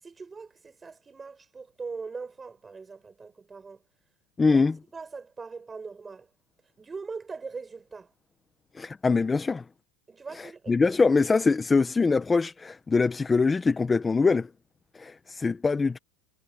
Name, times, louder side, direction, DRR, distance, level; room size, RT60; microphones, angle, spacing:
voice 1, 0.0-3.8 4.5-4.6 4.9-6.3 6.8-8.1 10.1-11.0, right 4 dB, 15° right, 7.3 m, -41 dB
voice 2, 4.4-4.7 8.7-9.6 10.7-14.5 14.9-16.0, left 4 dB, 15° left, 1.3 m, -23 dB
supercardioid pair, 130°, 0 cm